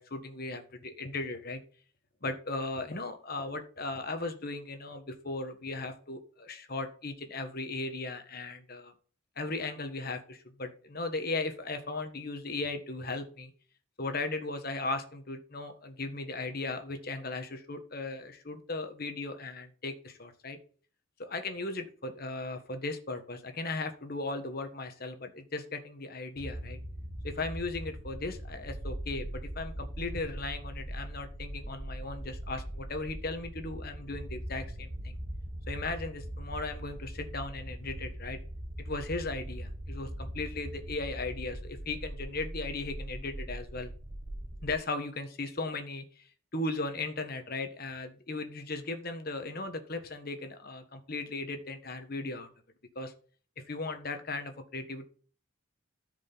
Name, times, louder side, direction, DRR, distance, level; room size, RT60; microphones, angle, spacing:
voice 1, 0.0-1.6 2.2-8.9 9.4-13.5 14.0-20.6 21.2-26.8 27.2-35.2 35.7-38.4 38.8-43.9 44.6-52.5 52.9-53.1 53.6-55.1, left 3 dB, 45° left, 7 dB, 1.4 m, -37 dB
sound 1, 26.4-44.7, right 1 dB, 35° right, 1.4 m, -41 dB
14.0 x 5.1 x 4.0 m, 0.43 s
head